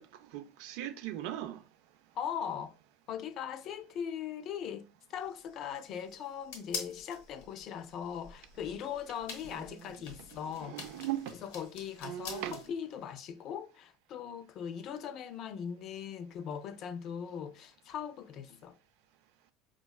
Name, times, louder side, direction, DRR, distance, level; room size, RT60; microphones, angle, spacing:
voice 1, 0.0-1.7 9.5-9.9 10.5-11.4 12.0-12.6, right 12 dB, 75° right, 0.4 m, -39 dB
voice 2, 2.1-2.8 3.1-10.8 11.4-18.8, left 8 dB, 50° left, 0.4 m, -40 dB
sound 1, 5.2-12.7, left 4 dB, 90° left, 0.9 m, -47 dB
4.4 x 2.2 x 2.3 m
supercardioid pair, 115°, 0 cm